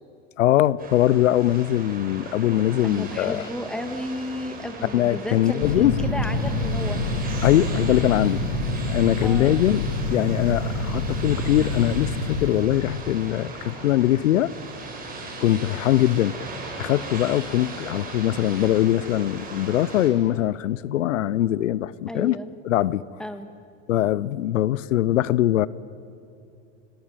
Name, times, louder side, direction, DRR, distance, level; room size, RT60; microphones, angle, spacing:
voice 1, 0.4-3.4 4.9-6.0 7.4-8.4 8.9-9.8 10.1-14.5 15.4-16.4 16.8-22.4 22.6-23.0 23.9-25.7, left 13 dB, 90° left, 20 dB, 0.8 m, -22 dB
sound 1, 0.8-20.1, right 2 dB, 25° right, 7.1 m, -38 dB
voice 2, 2.8-7.0 9.2-9.6 15.4-15.8 22.1-22.5 23.2-23.5, left 1 dB, ahead, 8 dB, 2.3 m, -33 dB
sound 2, 5.6-12.6, left 2 dB, 60° left, 3.9 m, -27 dB
29.5 x 19.5 x 9.1 m, 2.6 s
hypercardioid pair, 105°, 37 cm